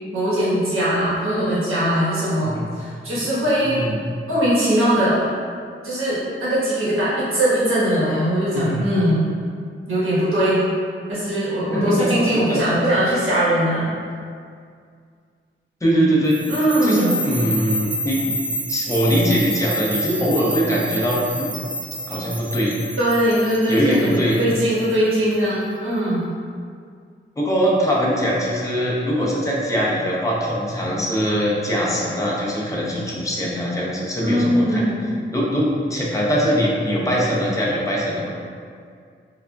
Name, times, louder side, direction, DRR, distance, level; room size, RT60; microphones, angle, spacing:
voice 1, 0.1-3.8 4.3-5.3 5.8-9.3 9.9-10.6 11.1-13.9 16.5-17.2 23.0-26.3 34.2-35.2, equal, 90° right, -10 dB, 1.2 m, -20 dB
voice 2, 3.6-4.0 8.5-8.8 11.7-12.1 12.5-12.6 15.8-16.4 16.8-18.3 18.7-21.5 22.1-22.8 23.7-24.4 27.4-34.8 35.3-38.3, equal, 15° left, -5 dB, 0.6 m, -21 dB
sound 1, 16.3-25.3, right 1 dB, 65° right, 0.6 m, -29 dB
4.7 x 2.2 x 2.2 m, 2.2 s
wide cardioid pair, 140°, 21 cm